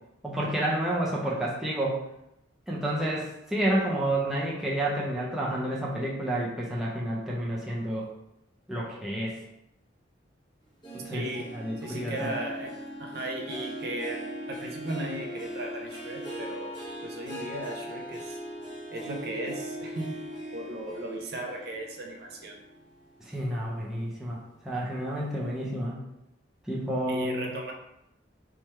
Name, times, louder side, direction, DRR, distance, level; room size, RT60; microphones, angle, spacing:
voice 1, 0.2-2.0 2.7-8.1 8.7-9.4 10.9-11.3 11.5-12.3 23.3-26.0 26.7-27.5, right 1 dB, ahead, -5 dB, 0.5 m, -30 dB
Harp, 10.8-23.6 24.0-24.4 24.9-25.0, equal, 20° left, 1.0 m, -40 dB
voice 2, 11.1-11.5 11.8-12.7 13.0-14.2 14.5-16.7 17.0-18.4 18.9-20.2 20.5-22.6 25.3-25.5 27.1-27.7, right 1 dB, 50° right, 1 dB, 0.5 m, -36 dB
3.1 x 2.3 x 4.2 m, 0.85 s
head